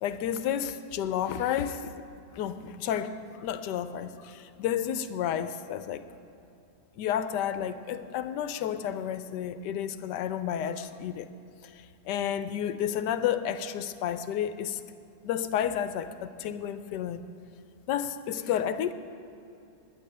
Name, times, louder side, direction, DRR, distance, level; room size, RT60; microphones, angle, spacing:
voice 1, 0.0-1.9 2.3-6.0 7.0-11.3 12.1-14.8 15.2-17.2 17.9-18.9, left 9 dB, 90° left, 12 dB, 1.2 m, -31 dB
20.0 x 10.5 x 3.4 m, 2.8 s
omnidirectional pair, 1.8 m